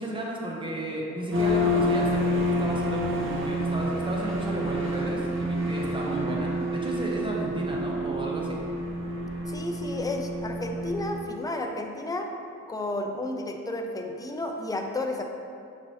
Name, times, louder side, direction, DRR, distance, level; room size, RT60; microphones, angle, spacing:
voice 1, 0.0-8.6, right 1 dB, 15° right, -3 dB, 0.9 m, -33 dB
sound 1, 1.3-11.2, equal, 40° right, 0.8 m, -28 dB
voice 2, 9.5-12.3 12.7-15.2, left 2 dB, 10° left, 3 dB, 0.4 m, -32 dB
5.7 x 2.9 x 3.1 m, 2.5 s
cardioid pair, 90°, 30 cm